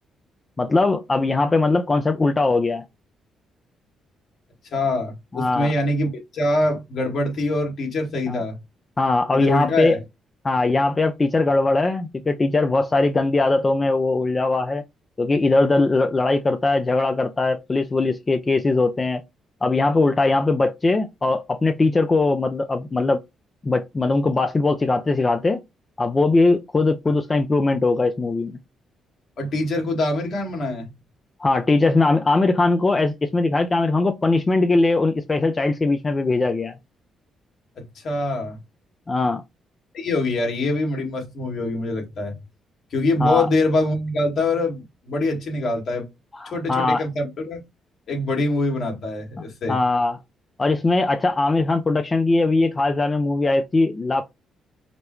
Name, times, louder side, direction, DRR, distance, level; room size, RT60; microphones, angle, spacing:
voice 1, 0.6-2.8 5.3-5.7 8.3-8.4 9.0-10.0 10.4-14.8 15.2-19.2 19.6-23.2 23.6-25.6 26.0-28.6 31.4-36.8 39.1-39.4 43.2-43.5 46.3-47.0 49.7-50.2 50.6-54.2, left 3 dB, 25° left, 0.5 m, -20 dB
voice 2, 4.7-8.6 9.3-10.0 29.4-30.9 37.8-38.6 39.9-42.4 42.9-46.1 46.5-47.6 48.1-49.8, left 2 dB, 60° left, 1.9 m, -24 dB
5.0 x 2.2 x 3.1 m
cardioid pair, 90°, 0 cm